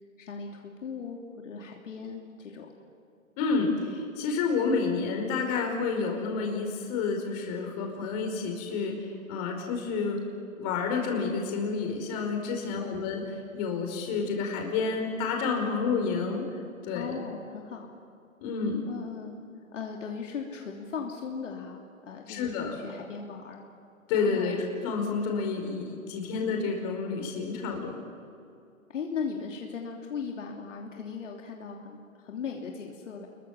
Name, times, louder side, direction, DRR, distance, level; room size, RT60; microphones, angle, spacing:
voice 1, 0.2-2.7 12.6-13.0 16.9-17.9 18.9-19.4 19.7-23.6 24.1-24.6 28.9-33.3, left 5 dB, 60° left, 0 dB, 3.0 m, -38 dB
voice 2, 3.4-8.9 9.3-10.2 10.6-13.2 13.5-16.4 16.8-17.2 18.4-18.9 22.3-22.7 24.1-28.0, left 4 dB, 30° left, 2 dB, 4.9 m, -29 dB
28.0 x 22.5 x 7.4 m, 2.5 s
hypercardioid pair, 150°, 42 cm